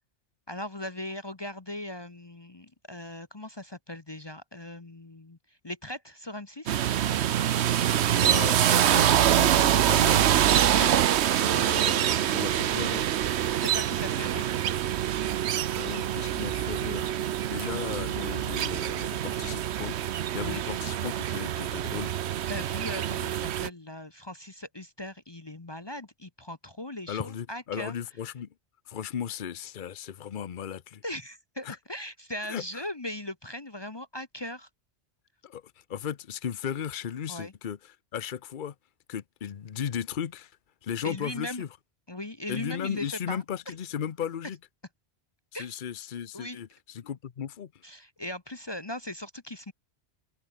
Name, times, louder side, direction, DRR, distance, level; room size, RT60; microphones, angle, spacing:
voice 1, 0.5-6.8 11.5-11.7 13.5-14.5 20.4-20.6 22.5-27.9 31.0-34.7 37.3-37.5 41.0-41.6 42.1-43.7 45.5-45.7 46.3-46.6 47.8-49.7, left 1 dB, 25° left, 1.0 m, -39 dB
sound 1, 6.7-23.7, right 11 dB, 80° right, 1.0 m, -25 dB
voice 2, 8.1-11.0 11.4-13.1 15.7-17.1 17.5-20.0 20.3-22.1 27.1-28.5 28.9-31.0 31.6-31.8 32.5-32.6 35.4-38.7 39.1-40.6 40.8-41.7 42.5-44.6 45.5-47.8, left 8 dB, 50° left, 0.9 m, -36 dB
omnidirectional pair, 1.1 m